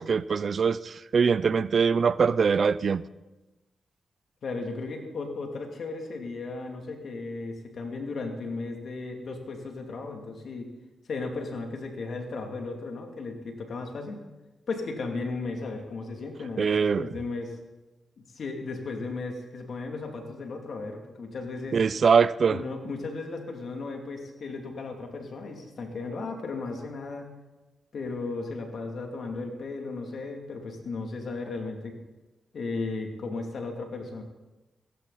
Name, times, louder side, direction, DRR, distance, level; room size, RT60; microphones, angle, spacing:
voice 1, 0.0-3.0 16.6-17.1 21.7-22.6, right 6 dB, 60° right, 0.5 m, -23 dB
voice 2, 4.4-10.7 11.1-14.2 14.7-16.7 17.0-17.6 18.2-21.8 22.5-27.3 27.9-32.0 32.5-34.2, left 3 dB, 70° left, 2.7 m, -35 dB
17.0 x 15.5 x 4.2 m
cardioid pair, 50°, 0 cm